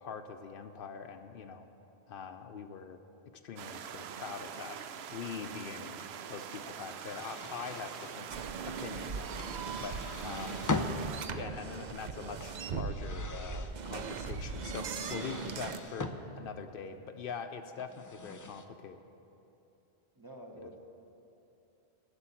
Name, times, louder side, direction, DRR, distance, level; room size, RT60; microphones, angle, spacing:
voice 1, 0.0-1.7 2.1-3.0 3.4-4.8 5.1-6.0 6.3-8.3 8.7-10.8 11.3-19.0 20.6-20.7, left 6 dB, 65° left, 8 dB, 0.7 m, -43 dB
sound 1, 3.6-11.3, right 8 dB, 85° right, 0.8 m, -44 dB
sound 2, 6.9-8.2 9.4-11.2 12.2-13.7 14.7-16.2 17.8-18.7, left 3 dB, 30° left, 0.3 m, -40 dB
sound 3, 8.3-15.8, right 5 dB, 55° right, 0.6 m, -39 dB
voice 2, 20.2-20.8, right 1 dB, 25° right, 1 dB, 0.8 m, -49 dB
11.5 x 6.9 x 8.4 m, 2.9 s
omnidirectional pair, 1.0 m